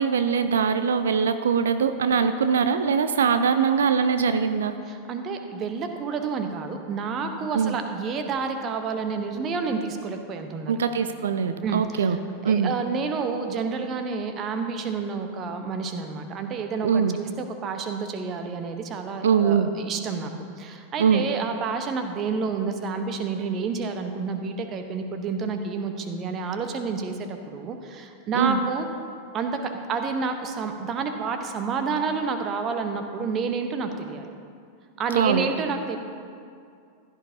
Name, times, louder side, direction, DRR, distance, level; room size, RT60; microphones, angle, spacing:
voice 1, 0.0-4.8 7.5-7.8 10.7-12.2 12.4-12.7 16.8-17.2 19.2-19.7 21.0-21.2 28.3-28.6 35.1-35.5, right 6 dB, 65° right, 10 dB, 0.4 m, -22 dB
voice 2, 4.9-10.7 11.6-20.3 20.6-28.9 29.3-34.3 35.0-36.0, right 5 dB, 30° right, 6 dB, 1.0 m, -29 dB
15.5 x 11.0 x 2.8 m, 2.3 s
figure-of-eight pair, 90°, 0 cm